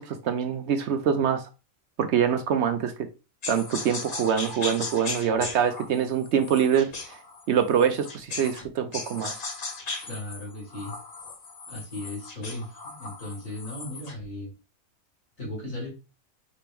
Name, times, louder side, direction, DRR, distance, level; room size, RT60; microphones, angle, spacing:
voice 1, 0.0-1.4 2.0-2.9 3.5-7.2 7.5-9.4, right 8 dB, 65° right, 0.8 m, -25 dB
sound 1, 3.4-8.7 8.9-14.2, left 3 dB, 40° left, 0.6 m, -37 dB
voice 2, 10.0-11.0 11.7-14.5 15.4-15.9, left 1 dB, 75° left, 3.0 m, -36 dB
5.1 x 2.9 x 3.4 m
omnidirectional pair, 1.4 m